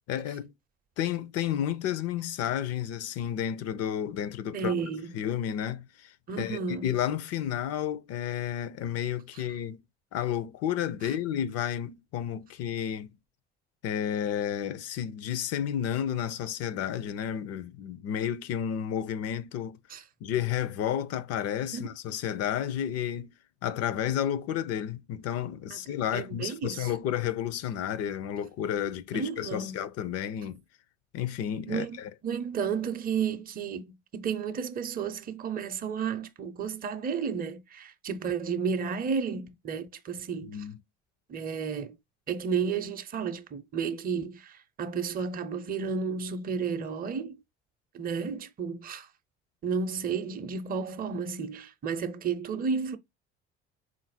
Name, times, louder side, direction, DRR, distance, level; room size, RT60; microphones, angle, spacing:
voice 1, 0.1-0.5 1.0-4.7 5.1-9.8 10.1-13.1 13.8-19.8 20.2-23.3 23.6-30.6 31.1-32.1 40.5-40.8, left 10 dB, 50° left, 0.5 m, -31 dB
voice 2, 4.5-5.2 6.3-6.9 9.3-9.4 19.9-20.0 21.7-21.9 25.7-25.8 26.1-26.9 29.1-29.8 31.7-40.6 41.3-42.0 42.3-47.4 47.9-49.1 49.6-53.0, right 6 dB, 25° right, 0.6 m, -32 dB
3.7 x 2.5 x 4.0 m
hypercardioid pair, 60°, 32 cm